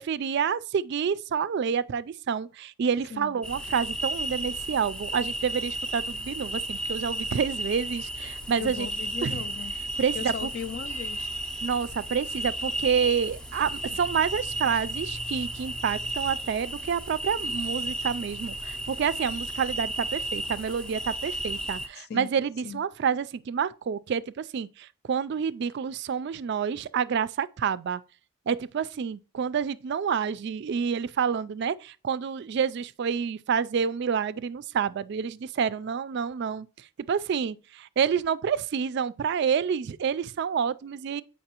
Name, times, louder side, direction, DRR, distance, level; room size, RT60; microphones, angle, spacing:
voice 1, 0.0-8.9 9.2-9.4 10.0-10.5 11.6-28.0 28.5-36.7 37.1-41.2, right 7 dB, 55° right, 0.3 m, -28 dB
sound 1, 3.4-21.9, right 1 dB, 5° left, 0.5 m, -33 dB
voice 2, 8.6-9.7 10.1-11.3 22.0-22.3 22.6-22.8, left 7 dB, 50° left, 0.4 m, -37 dB
sound 2, 10.8-13.1, left 1 dB, 85° left, 2.4 m, -55 dB
7.6 x 5.3 x 2.9 m
head